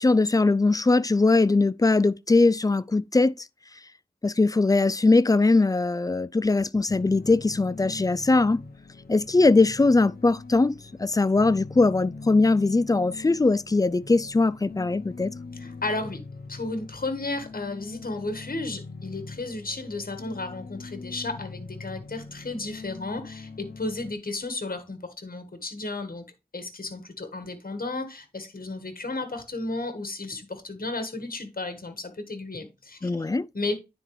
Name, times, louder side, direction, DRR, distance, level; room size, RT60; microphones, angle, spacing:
voice 1, 0.0-3.3 4.2-8.6 9.1-10.7 11.0-15.3 33.0-33.5, left 3 dB, 25° left, 0.3 m, -21 dB
sound 1, 6.9-24.1, left 4 dB, 85° left, 0.8 m, -42 dB
voice 2, 15.5-16.2 16.5-26.2 26.5-33.2 33.5-33.7, left 2 dB, 70° left, 1.5 m, -33 dB
9.7 x 4.4 x 3.2 m
wide cardioid pair, 45°, 15 cm